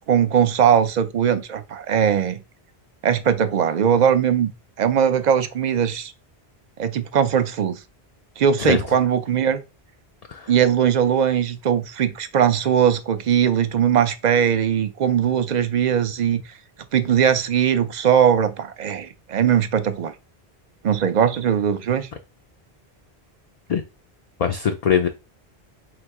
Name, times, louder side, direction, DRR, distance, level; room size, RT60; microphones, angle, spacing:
voice 1, 0.1-2.4 3.0-4.5 4.8-6.1 6.8-7.8 8.4-9.6 10.5-16.4 16.9-20.1 20.8-22.1, right 8 dB, 55° right, 0.6 m, -20 dB
voice 2, 24.4-25.1, left 7 dB, 55° left, 0.4 m, -21 dB
3.7 x 2.7 x 4.6 m
omnidirectional pair, 1.1 m